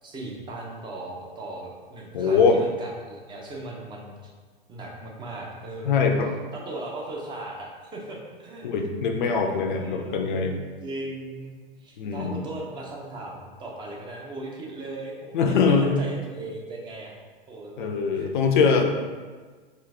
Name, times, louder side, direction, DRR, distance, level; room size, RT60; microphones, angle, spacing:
voice 1, 0.0-4.3 4.7-6.0 6.5-8.7 9.5-10.3 10.8-11.5 11.8-17.2 17.5-18.3, right 2 dB, 15° right, -2 dB, 0.6 m, -38 dB
voice 2, 2.1-2.6 5.9-6.3 8.6-10.6 12.0-12.4 15.3-16.0 17.8-18.8, left 5 dB, 55° left, 4 dB, 0.6 m, -22 dB
3.8 x 2.6 x 3.5 m, 1.4 s
figure-of-eight pair, 100°, 29 cm